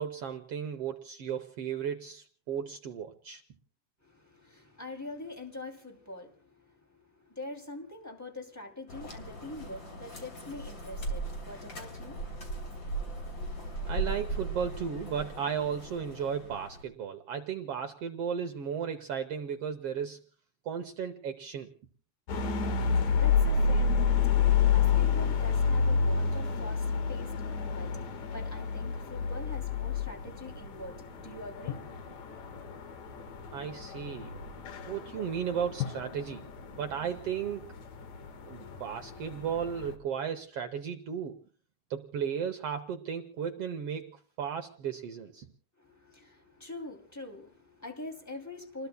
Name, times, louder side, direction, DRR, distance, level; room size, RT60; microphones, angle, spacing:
voice 1, 0.0-3.4 13.9-20.2 20.6-21.7 33.5-34.5 34.9-36.5 36.8-37.6 38.5-41.4 41.9-45.5, right 7 dB, 70° right, 7 dB, 1.4 m, -35 dB
voice 2, 4.0-6.3 7.3-12.5 22.7-32.7 45.8-48.9, left 2 dB, 5° left, 4 dB, 2.2 m, -44 dB
sound 1, 8.9-16.8, right 2 dB, 35° left, 3.6 m, -38 dB
sound 2, 22.3-39.9, left 6 dB, 60° left, 2.8 m, -30 dB
Drum, 31.7-33.2 35.8-38.0, left 10 dB, 85° left, 2.9 m, -42 dB
29.5 x 21.0 x 2.2 m, 0.43 s
omnidirectional pair, 3.8 m